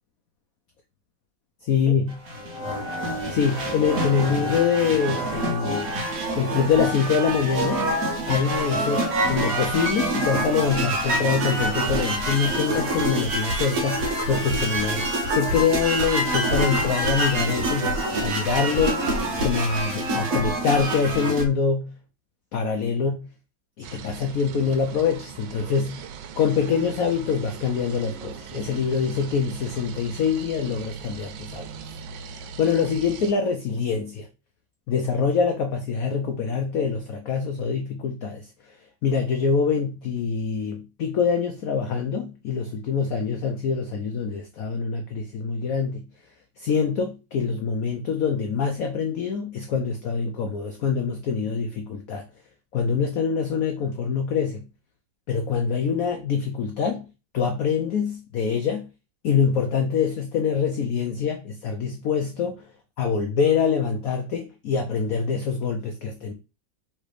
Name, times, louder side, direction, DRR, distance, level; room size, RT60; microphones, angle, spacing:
voice 1, 1.7-2.2 3.3-6.0 6.3-7.9 8.3-15.1 15.3-19.1 19.4-22.0 22.5-23.3 23.8-26.1 26.4-31.7 32.3-34.3 34.9-38.5 39.0-46.0 46.6-52.2 52.7-54.7 55.3-57.0 57.3-58.9 59.2-62.6 63.0-66.3, left 6 dB, 75° left, 0.8 m, -25 dB
sound 1, 2.1-21.4, right 1 dB, 55° right, 1.1 m, -26 dB
sound 2, 23.8-33.3, right 7 dB, 85° right, 1.4 m, -40 dB
3.3 x 3.3 x 4.9 m
omnidirectional pair, 2.1 m